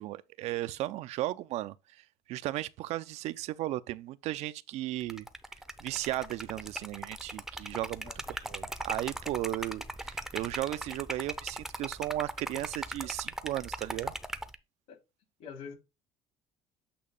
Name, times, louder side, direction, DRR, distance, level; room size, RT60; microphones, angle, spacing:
voice 1, 0.0-1.7 2.3-5.3 5.8-14.1, right 15 dB, 65° right, 0.5 m, -35 dB
Liquid, 5.0-14.6, right 1 dB, 5° right, 0.6 m, -39 dB
voice 2, 15.4-15.7, left 6 dB, 65° left, 3.5 m, -44 dB
8.5 x 2.9 x 5.3 m
cardioid pair, 125°, 12 cm